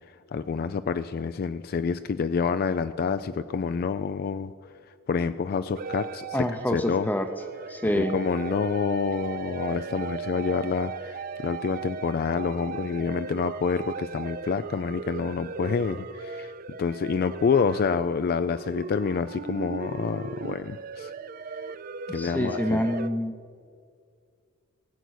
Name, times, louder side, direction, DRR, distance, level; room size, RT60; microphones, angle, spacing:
voice 1, 0.3-4.5 5.1-6.3 6.7-7.1 8.0-16.5 16.8-21.1 22.1-22.8, left 5 dB, 45° left, 11 dB, 0.3 m, -28 dB
sound 1, 5.8-23.1, right 5 dB, 45° right, 0.4 m, -37 dB
voice 2, 6.3-7.3 7.7-8.2 22.1-23.4, left 1 dB, 10° left, 6 dB, 0.6 m, -27 dB
17.5 x 8.1 x 6.4 m, 2.2 s
head